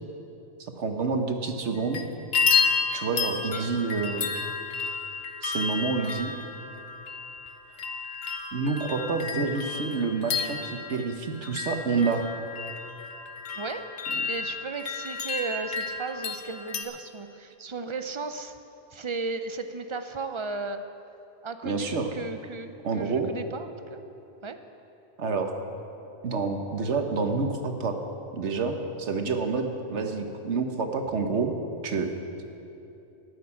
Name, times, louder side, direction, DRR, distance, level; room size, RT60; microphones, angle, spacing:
voice 1, 0.6-2.0 2.9-4.3 5.4-6.4 8.5-12.3 14.1-14.2 21.6-22.1 22.8-23.3 25.2-25.5 26.2-28.0 28.3-31.5 31.8-32.1, right 4 dB, 80° right, 5 dB, 1.4 m, -28 dB
sound 1, 1.6-2.0 2.3-16.8, left 5 dB, 60° left, 1.1 m, -31 dB
voice 2, 13.6-13.9 14.2-18.5 18.9-20.8 21.4-24.0 24.4-24.6, right 4 dB, 35° right, 8 dB, 0.5 m, -35 dB
14.0 x 6.6 x 9.6 m, 2.9 s
omnidirectional pair, 1.2 m